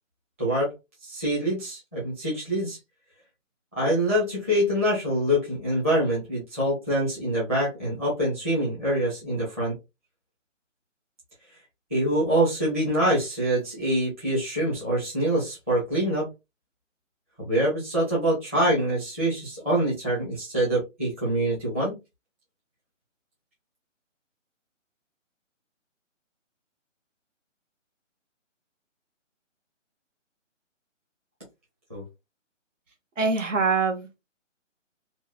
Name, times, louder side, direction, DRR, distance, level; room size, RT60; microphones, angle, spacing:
voice 1, 0.4-0.7 1.0-2.8 3.8-9.7 11.9-16.3 17.4-21.9 31.9-32.0, right 1 dB, 10° right, 0.7 m, -25 dB
voice 2, 33.2-34.1, right 4 dB, 75° right, 1.1 m, -24 dB
2.8 x 2.3 x 2.3 m
hypercardioid pair, 160°, 38 cm